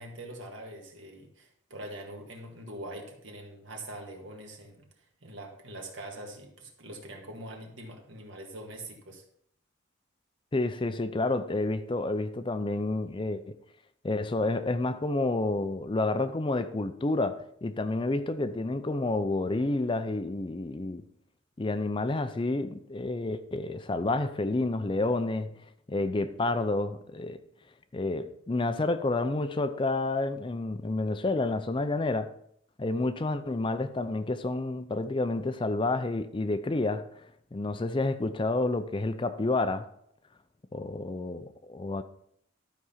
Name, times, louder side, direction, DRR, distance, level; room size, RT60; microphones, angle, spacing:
voice 1, 0.0-4.8 5.2-9.2, right 1 dB, 70° right, 1.9 m, -43 dB
voice 2, 10.5-13.6 14.0-21.0 21.6-25.6 25.9-27.4 27.9-32.3 32.8-39.9 40.7-42.0, left 2 dB, 25° left, 0.5 m, -29 dB
12.0 x 4.9 x 5.7 m
head